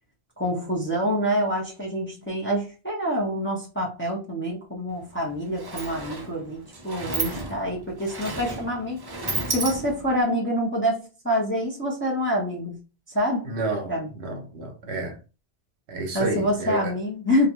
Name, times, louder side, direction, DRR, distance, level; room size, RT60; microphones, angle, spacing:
voice 1, 0.4-12.8 13.1-13.5 13.9-14.1 14.8-14.9 16.1-17.5, equal, 15° left, 0.6 m, -26 dB
Sliding door, 4.9-5.0 5.3-10.2, right 2 dB, 35° right, 0.3 m, -33 dB
voice 2, 13.4-15.2 15.9-16.9, right 2 dB, 75° right, 1.0 m, -30 dB
2.5 x 2.2 x 2.8 m
omnidirectional pair, 1.1 m